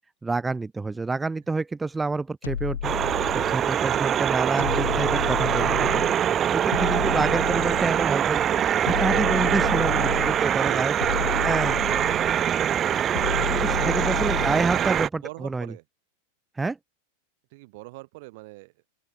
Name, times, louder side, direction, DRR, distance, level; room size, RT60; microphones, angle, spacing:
voice 1, 0.2-2.9 3.5-8.4 8.8-10.9 11.4-11.7 13.5-15.7 16.6-16.8, right 3 dB, 10° right, 0.9 m, -28 dB
sound 1, 2.4-3.8 4.6-6.2 6.7-8.1 8.9-10.5 11.0-12.4 13.1-14.8, left 8 dB, 65° left, 2.9 m, -31 dB
sound 2, 2.8-15.1, right 9 dB, 25° right, 0.5 m, -24 dB
voice 2, 3.8-4.2 10.3-12.0 13.5-13.9 14.3-15.8 17.5-18.9, right 24 dB, 50° right, 3.0 m, -43 dB
open air
figure-of-eight pair, 90°, 0 cm